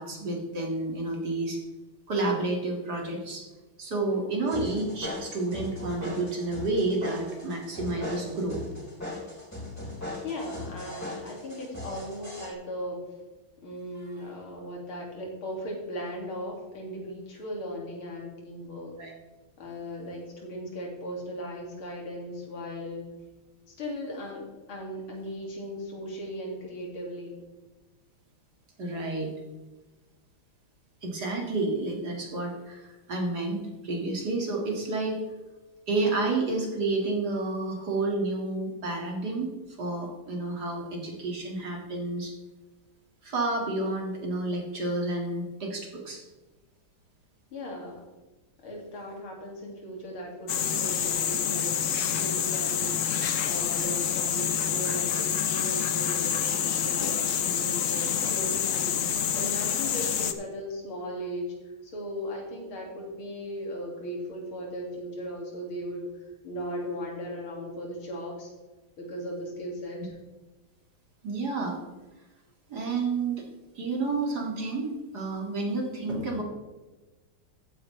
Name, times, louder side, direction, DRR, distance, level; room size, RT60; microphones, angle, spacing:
voice 1, 0.0-1.6 2.1-3.4 3.8-8.6 13.9-14.3 19.0-19.1 28.8-29.3 31.0-35.2 35.9-39.5 39.8-42.3 43.2-46.2 71.2-71.8 72.7-73.5 73.8-76.4, right 2 dB, 50° right, 0 dB, 2.6 m, -30 dB
sound 1, 4.5-12.5, left 1 dB, 5° left, 3.8 m, -38 dB
voice 2, 10.2-13.0 13.6-19.0 19.6-23.1 23.7-27.4 47.5-48.0 48.6-61.5 61.8-66.1 66.4-68.5 69.0-70.1, equal, 80° left, -1 dB, 3.2 m, -37 dB
sound 2, 50.5-60.3, left 8 dB, 65° left, 0.8 m, -27 dB
14.5 x 9.2 x 3.3 m, 1.2 s
omnidirectional pair, 2.3 m